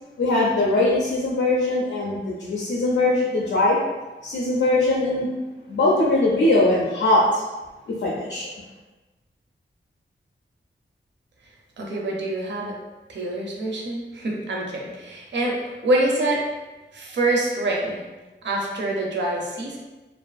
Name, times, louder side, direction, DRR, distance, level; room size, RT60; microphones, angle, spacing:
voice 1, 0.2-3.8 4.2-5.3 5.7-7.4 8.0-8.5, left 2 dB, 75° left, -5 dB, 0.4 m, -21 dB
voice 2, 11.8-12.8 13.1-16.4 16.9-18.0 18.4-19.8, right 2 dB, 70° right, -2 dB, 0.5 m, -25 dB
2.6 x 2.4 x 2.3 m, 1.2 s
wide cardioid pair, 110°, 20 cm